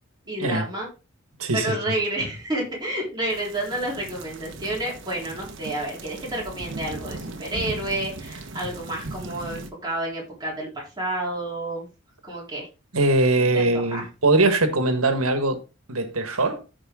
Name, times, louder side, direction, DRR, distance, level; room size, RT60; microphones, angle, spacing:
voice 1, 0.3-0.9 1.5-11.9 12.3-12.7 13.4-14.1, right 1 dB, 20° right, 3.8 m, -30 dB
voice 2, 1.4-1.8 12.9-15.6 15.9-16.6, right 2 dB, 85° right, 1.6 m, -21 dB
sound 1, 3.3-9.7, right 2 dB, 60° right, 1.4 m, -38 dB
14.5 x 4.9 x 3.7 m
head